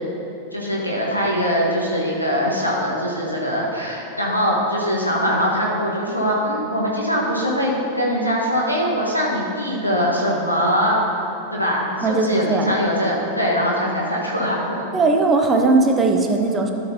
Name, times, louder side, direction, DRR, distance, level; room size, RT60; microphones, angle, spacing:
voice 1, 0.5-11.0 11.5-14.6, equal, 90° left, -4 dB, 1.3 m, -22 dB
voice 2, 12.0-12.8 14.9-16.7, right 3 dB, 20° right, 3 dB, 0.7 m, -18 dB
12.5 x 6.2 x 2.8 m, 2.9 s
figure-of-eight pair, 90°, 0 cm